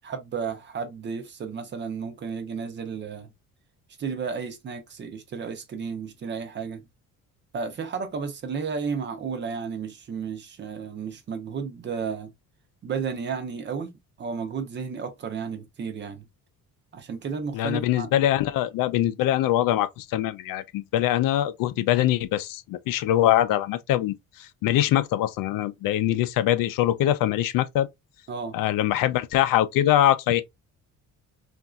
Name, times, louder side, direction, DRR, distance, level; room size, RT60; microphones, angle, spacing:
voice 1, 0.0-3.3 4.0-6.8 7.5-12.3 12.8-13.9 14.2-16.3 16.9-18.3 28.3-28.6, right 5 dB, 35° right, 0.6 m, -33 dB
voice 2, 17.5-27.9 28.5-30.4, left 12 dB, 75° left, 0.5 m, -23 dB
3.9 x 2.6 x 2.3 m
cardioid pair, 175°, 33 cm